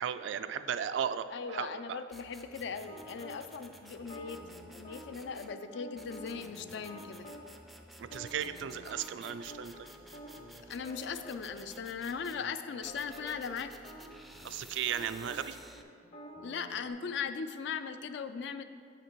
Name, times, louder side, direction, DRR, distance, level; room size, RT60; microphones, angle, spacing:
voice 1, 0.0-2.0 8.0-9.9 14.4-15.6, right 8 dB, 75° right, 12 dB, 0.3 m, -36 dB
voice 2, 1.3-7.3 10.7-13.7 16.4-18.6, left 6 dB, 70° left, 10 dB, 0.4 m, -39 dB
sound 1, 2.1-5.5 6.0-12.4 12.8-15.8, equal, ahead, 0.4 m, -54 dB
sound 2, 2.9-3.4 4.0-7.4 8.0-11.6 11.9-12.0 12.4-16.9, equal, 40° left, 0.8 m, -49 dB
7.3 x 5.8 x 4.6 m, 2.2 s
head